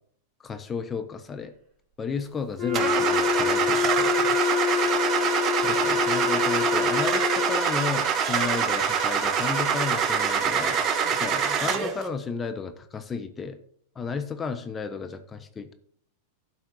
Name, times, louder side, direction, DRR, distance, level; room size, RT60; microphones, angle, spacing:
voice 1, 0.4-1.5 2.0-4.3 5.6-10.8 11.1-13.6 14.0-15.7, left 5 dB, 20° left, 9 dB, 1.0 m, -33 dB
Wind instrument woodwind instrument, 2.6-7.7, left 6 dB, 15° right, 4.1 m, -26 dB
Car / Engine starting, 2.7-12.0, right 7 dB, 35° right, 1.4 m, -25 dB
11.5 x 4.2 x 6.2 m, 0.63 s
hypercardioid pair, 110°, 0 cm